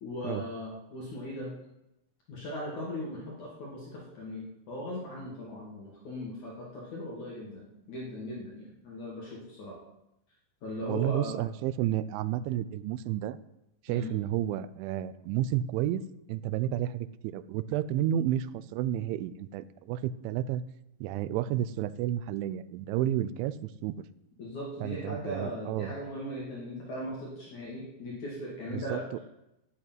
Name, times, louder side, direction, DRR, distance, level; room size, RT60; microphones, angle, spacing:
voice 1, 0.0-1.5 2.3-9.8 10.6-11.4 13.9-14.1 24.4-29.2, equal, 45° left, -4 dB, 3.4 m, -38 dB
voice 2, 10.9-13.4 13.9-16.0 16.3-20.6 21.0-24.0 24.8-25.9 28.7-29.0, right 12 dB, 85° right, 15 dB, 3.0 m, -31 dB
9.9 x 8.2 x 9.5 m, 0.87 s
omnidirectional pair, 5.4 m